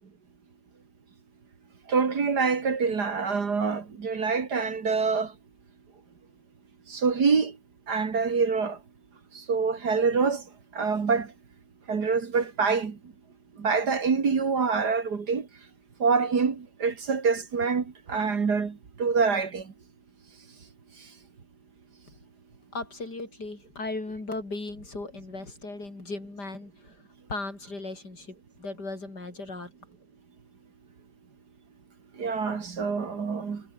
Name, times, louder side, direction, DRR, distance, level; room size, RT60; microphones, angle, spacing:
voice 1, 1.9-5.3 6.9-7.5 7.9-8.8 9.5-10.4 10.8-11.3 11.9-12.9 13.6-15.4 16.0-18.7 19.0-19.6 32.2-33.6, right 5 dB, 55° right, 2.6 m, -25 dB
voice 2, 22.7-26.9 27.3-29.7, left 2 dB, 60° left, 6.0 m, -37 dB
omnidirectional pair, 2.1 m